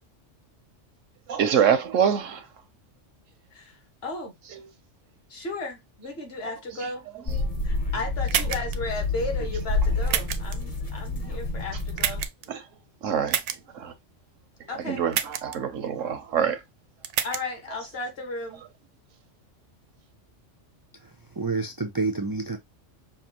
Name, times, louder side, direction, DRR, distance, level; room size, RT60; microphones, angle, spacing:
voice 1, 1.3-2.5 4.5-4.6 12.5-12.6 13.0-13.4 13.7-13.9 14.8-16.6, right 8 dB, 85° right, 1.2 m, -25 dB
voice 2, 3.5-4.3 5.3-7.0 7.6-12.3 14.7-15.0 17.2-18.6, left 2 dB, 55° left, 1.5 m, -35 dB
sound 1, 7.3-12.2, left 2 dB, 35° left, 0.9 m, -28 dB
sound 2, 8.3-8.8 10.1-10.6 12.0-12.5 13.3-13.6 15.1-15.6 17.0-17.4, right 9 dB, 70° right, 0.8 m, -27 dB
voice 3, 21.0-22.6, right 3 dB, 35° right, 0.3 m, -29 dB
5.6 x 2.4 x 2.9 m
omnidirectional pair, 1.3 m